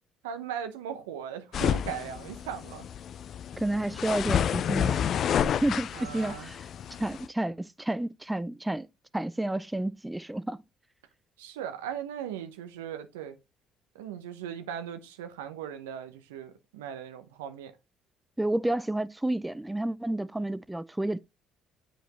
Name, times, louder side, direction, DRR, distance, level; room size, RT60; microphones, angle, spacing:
voice 1, 0.2-2.9 5.9-6.5 11.4-13.4 13.9-17.7, right 9 dB, 85° right, 0.8 m, -38 dB
sound 1, 1.5-7.3, left 9 dB, 55° left, 0.4 m, -30 dB
voice 2, 3.5-5.0 5.6-6.7 7.0-8.9 9.1-10.6 18.4-21.2, right 1 dB, 10° right, 0.4 m, -30 dB
7.9 x 5.0 x 3.0 m
hypercardioid pair, 55°, 0 cm